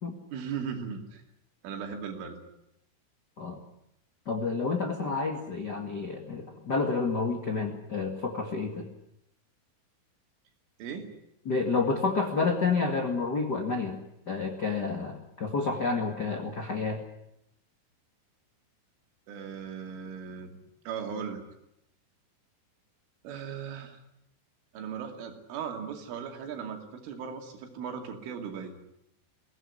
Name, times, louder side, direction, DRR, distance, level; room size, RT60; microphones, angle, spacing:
voice 1, 0.3-1.2 1.6-2.4 10.8-11.1 19.3-20.6 20.9-21.4 23.2-24.0 24.7-28.8, right 7 dB, 85° right, 4 dB, 5.1 m, -37 dB
voice 2, 4.2-8.9 11.4-14.0 14.3-17.0, left 4 dB, 70° left, 4 dB, 0.9 m, -29 dB
23.0 x 17.5 x 9.9 m, 0.81 s
omnidirectional pair, 5.5 m